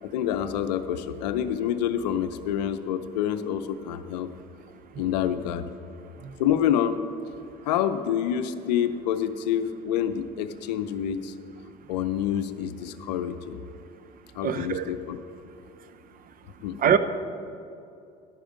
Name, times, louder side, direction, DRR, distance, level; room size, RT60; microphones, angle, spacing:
voice 1, 0.0-4.3 5.0-5.7 6.4-7.0 7.6-11.3 11.9-13.6 14.3-15.2 16.6-16.8, left 10 dB, 80° left, 10 dB, 0.6 m, -27 dB
voice 2, 5.0-5.4 6.2-6.3 14.4-14.9 16.8-17.0, right 8 dB, 45° right, 12 dB, 0.7 m, -25 dB
11.5 x 9.2 x 5.2 m, 2.6 s
hypercardioid pair, 65°, 21 cm